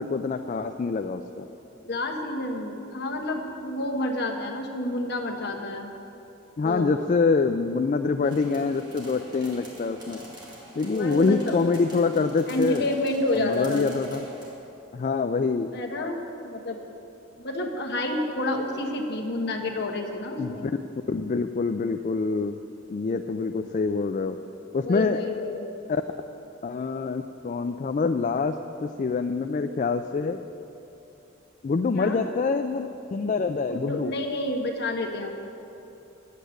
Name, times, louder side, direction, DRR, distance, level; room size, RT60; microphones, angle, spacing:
voice 1, 0.0-1.5 6.6-10.2 10.8-12.9 13.3-14.3 14.9-15.7 20.4-20.7 21.1-22.6 22.9-24.4 24.7-25.2 25.9-26.0 26.6-28.5 28.8-30.4 31.6-34.1, left 4 dB, 40° left, 7 dB, 0.3 m, -25 dB
voice 2, 1.8-5.9 6.6-6.9 10.9-11.6 12.5-13.9 15.7-16.8 17.4-20.7 24.8-25.6 31.9-32.2 33.7-35.3, left 1 dB, 55° left, 2 dB, 1.3 m, -29 dB
sound 1, 8.2-14.5, equal, 20° right, 2.0 m, -45 dB
10.0 x 8.3 x 7.9 m, 2.9 s
head